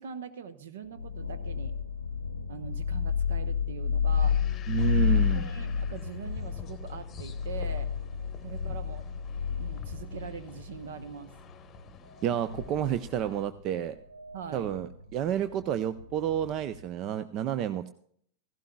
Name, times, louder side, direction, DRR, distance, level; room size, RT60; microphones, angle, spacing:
voice 1, 0.0-1.7 2.5-4.4 5.3-7.9 8.4-9.0 9.5-11.3 14.3-14.7 17.5-17.7, right 6 dB, 60° right, 12 dB, 1.0 m, -42 dB
sound 1, 0.8-16.8, left 6 dB, 90° left, 0.7 m, -32 dB
sound 2, 4.1-13.5, left 6 dB, 25° left, 1.0 m, -49 dB
voice 2, 4.7-5.5 8.7-8.8 12.2-14.0 14.5-17.9, right 10 dB, 35° right, 12 dB, 0.5 m, -30 dB
16.0 x 15.5 x 2.2 m, 0.62 s
figure-of-eight pair, 90°, 0 cm